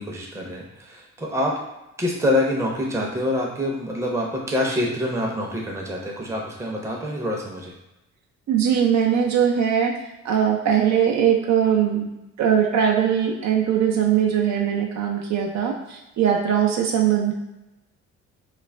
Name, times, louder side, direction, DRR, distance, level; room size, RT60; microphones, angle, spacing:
voice 1, 0.0-1.5 2.0-7.7, left 1 dB, 10° right, -2 dB, 0.6 m, -26 dB
voice 2, 8.5-9.9 10.2-12.1 12.4-17.3, right 8 dB, 65° right, 0 dB, 0.5 m, -20 dB
2.4 x 2.1 x 3.2 m, 0.97 s
cardioid pair, 90°, 30 cm